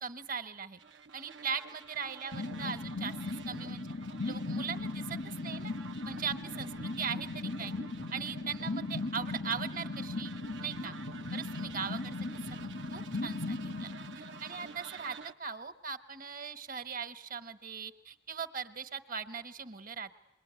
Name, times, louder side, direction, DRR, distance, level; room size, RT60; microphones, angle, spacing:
voice 1, 0.0-0.8 1.1-3.1 3.5-3.9 4.2-5.7 6.0-7.7 8.1-10.3 10.6-10.9 11.3-12.1 12.6-13.9 14.1-20.1, right 6 dB, 50° right, 10 dB, 1.2 m, -39 dB
sound 1, 0.8-15.3, right 5 dB, 85° right, 0.9 m, -50 dB
sound 2, 2.3-15.0, left 2 dB, 85° left, 1.1 m, -38 dB
27.0 x 21.5 x 9.5 m, 0.92 s
head